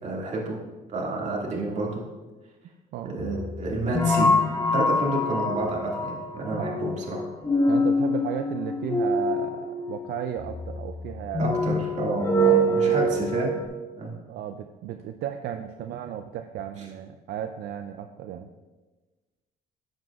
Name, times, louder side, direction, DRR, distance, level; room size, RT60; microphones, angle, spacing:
voice 1, 0.0-0.6 0.9-2.0 3.1-4.3 4.7-7.2 11.4-13.5 14.0-14.1 16.8-16.9, right 2 dB, 45° right, -3 dB, 2.1 m, -29 dB
sound 1, 3.2-13.6, equal, 20° left, 1.0 m, -25 dB
voice 2, 6.4-6.8 7.7-11.8 12.5-13.1 14.3-18.5, right 10 dB, 70° right, 7 dB, 0.5 m, -34 dB
10.5 x 7.8 x 2.4 m, 1.2 s
cardioid pair, 110°, 17 cm